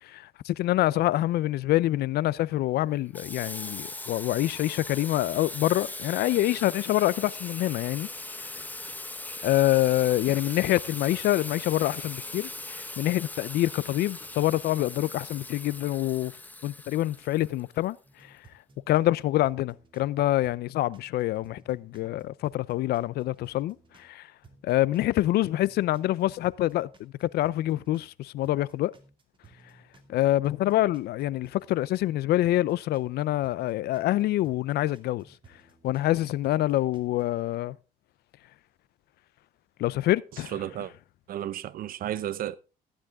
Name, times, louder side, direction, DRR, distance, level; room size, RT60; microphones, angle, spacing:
voice 1, 0.0-8.1 8.4-8.5 9.4-16.3 16.6-18.0 18.2-18.4 18.9-24.3 24.6-28.9 30.1-35.2 35.8-37.8 39.8-40.6, left 15 dB, 70° left, 0.6 m, -26 dB
Water tap faucet / Sink (filling or washing), 3.1-17.9, left 2 dB, 10° left, 1.2 m, -39 dB
sound 1, 18.0-20.1 20.4-24.1 24.4-28.1 28.4-32.1 32.4-36.1 36.4-37.2, right 4 dB, 30° right, 2.6 m, -57 dB
voice 2, 40.5-40.9 41.3-42.6, right 11 dB, 60° right, 0.7 m, -32 dB
15.0 x 10.0 x 3.6 m
cardioid pair, 110°, 17 cm